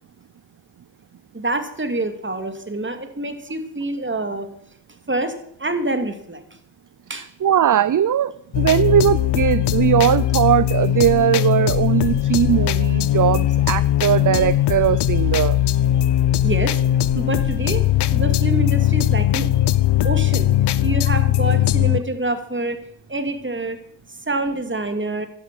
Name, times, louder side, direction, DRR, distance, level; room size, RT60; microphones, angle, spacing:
voice 1, 1.3-4.5 5.1-6.4 7.1-7.3 16.4-16.8 17.1-17.9 18.1-19.5 20.0-20.5 20.8-22.8 23.1-23.8 24.1-25.3, right 2 dB, 30° right, 8 dB, 2.7 m, -26 dB
voice 2, 7.1-15.6, right 9 dB, 50° right, 16 dB, 0.7 m, -19 dB
sound 1, 8.5-22.0, left 12 dB, 85° left, 0.7 m, -19 dB
12.0 x 10.5 x 7.6 m, 0.66 s
supercardioid pair, 45°, 40 cm